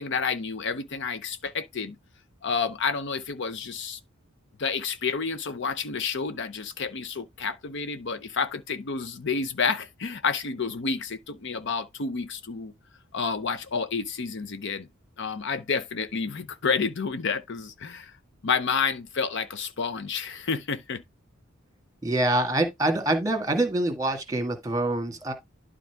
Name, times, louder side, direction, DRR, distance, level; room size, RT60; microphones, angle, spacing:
voice 1, 0.0-2.0 2.4-4.0 4.6-12.7 13.1-14.9 15.2-18.1 18.4-21.0, left 5 dB, 60° left, 0.7 m, -29 dB
voice 2, 22.0-25.3, right 1 dB, 15° right, 1.7 m, -25 dB
12.0 x 4.0 x 3.5 m
head